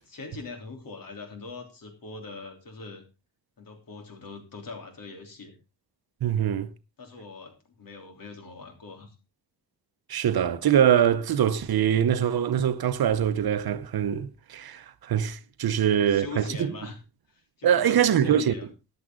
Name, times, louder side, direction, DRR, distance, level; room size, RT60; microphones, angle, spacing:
voice 1, 0.0-3.0 3.6-5.5 7.0-9.1 15.7-17.0 17.3-18.7, left 4 dB, 60° left, 3.5 m, -42 dB
voice 2, 6.2-6.7 10.1-16.7 17.6-18.5, right 9 dB, 65° right, 0.9 m, -23 dB
14.0 x 11.0 x 3.8 m
wide cardioid pair, 170°, 39 cm